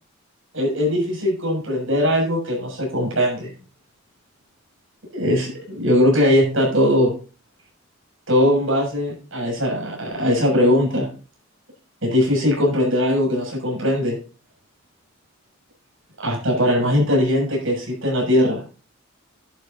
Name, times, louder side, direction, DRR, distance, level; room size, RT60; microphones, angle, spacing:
voice 1, 0.5-3.5 5.1-7.1 8.3-11.1 12.0-14.2 16.2-18.6, left 1 dB, 70° right, 0 dB, 6.8 m, -20 dB
12.0 x 11.0 x 2.7 m, 0.35 s
head